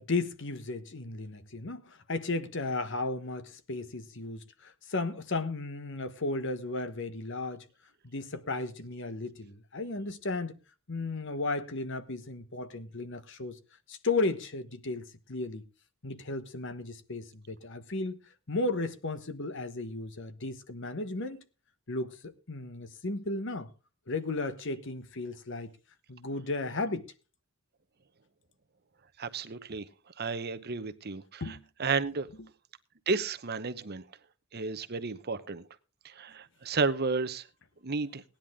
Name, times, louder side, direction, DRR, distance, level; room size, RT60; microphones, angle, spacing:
voice 1, 0.0-7.6 8.0-10.6 10.9-13.6 13.9-15.6 16.0-21.4 21.9-23.7 24.1-25.7 26.1-27.1 31.4-31.6, left 3 dB, 60° left, 1.2 m, -34 dB
voice 2, 29.2-29.9 30.2-32.3 33.1-34.0 34.5-35.6 36.0-37.5 37.8-38.2, right 4 dB, 50° right, 0.9 m, -32 dB
17.5 x 10.5 x 3.7 m
head